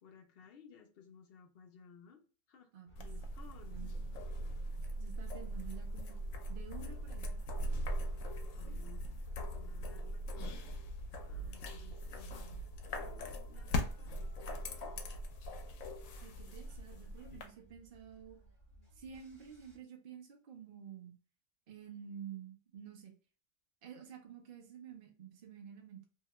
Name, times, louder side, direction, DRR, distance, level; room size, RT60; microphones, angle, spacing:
voice 1, 0.0-2.2 2.5-2.7 3.0-4.0 8.6-9.2 9.5-10.6 11.2-15.0, left 6 dB, 60° left, 0.7 m, -59 dB
voice 2, 2.7-3.1 3.7-4.1 5.0-6.2 6.5-7.4 16.2-18.4 18.9-21.1 21.7-23.1 23.8-26.1, right 8 dB, 50° right, 0.8 m, -50 dB
sound 1, 2.9-19.8, right 1 dB, 25° left, 1.1 m, -61 dB
sound 2, 3.0-17.5, equal, 85° left, 1.0 m, -40 dB
2.8 x 2.2 x 2.9 m
omnidirectional pair, 1.3 m